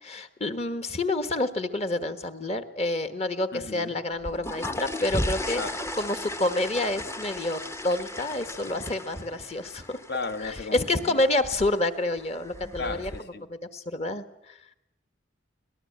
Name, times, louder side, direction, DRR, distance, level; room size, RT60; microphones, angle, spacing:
voice 1, 0.0-5.6 5.9-10.0 10.4-13.1 13.5-14.6, left 2 dB, 35° left, 11 dB, 1.4 m, -28 dB
voice 2, 3.5-4.0 5.6-5.8 10.1-11.3 12.8-13.4, left 3 dB, 55° left, 11 dB, 1.3 m, -35 dB
sound 1, 4.1-13.2, left 1 dB, 15° left, 0.8 m, -36 dB
25.0 x 18.5 x 8.7 m, 0.81 s
head